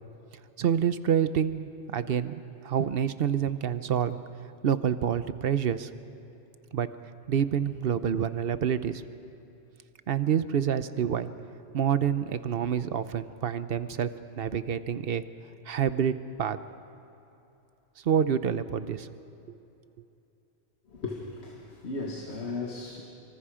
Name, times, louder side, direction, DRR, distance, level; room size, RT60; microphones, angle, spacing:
voice 1, 0.6-4.2 4.6-5.9 6.7-6.9 7.3-9.0 10.1-11.3 11.7-14.1 14.4-15.2 15.7-16.6 18.0-19.1, right 8 dB, 65° right, 13 dB, 0.9 m, -27 dB
voice 2, 20.9-23.0, left 3 dB, 85° left, -1 dB, 2.0 m, -36 dB
25.0 x 24.5 x 5.0 m, 2.8 s
omnidirectional pair, 1.1 m